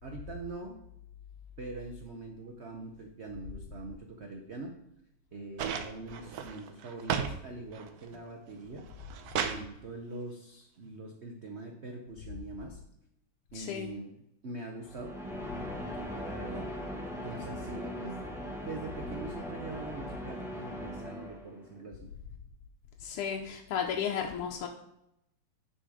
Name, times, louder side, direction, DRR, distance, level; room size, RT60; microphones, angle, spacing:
voice 1, 0.0-0.8 1.6-4.7 5.3-8.8 9.4-12.8 13.5-14.1 14.4-15.2 16.1-16.7 17.1-18.3 18.6-22.1, right 2 dB, 90° right, 2 dB, 0.5 m, -43 dB
sound 1, 5.6-7.4 7.7-8.3 8.8-9.7 10.9-11.0, right 7 dB, 70° right, 0.9 m, -34 dB
voice 2, 13.5-13.9 23.0-24.7, left 8 dB, 85° left, 1 dB, 1.6 m, -34 dB
sound 2, 14.8-21.7, equal, ahead, 0.6 m, -40 dB
10.0 x 4.3 x 4.9 m, 0.81 s
omnidirectional pair, 2.3 m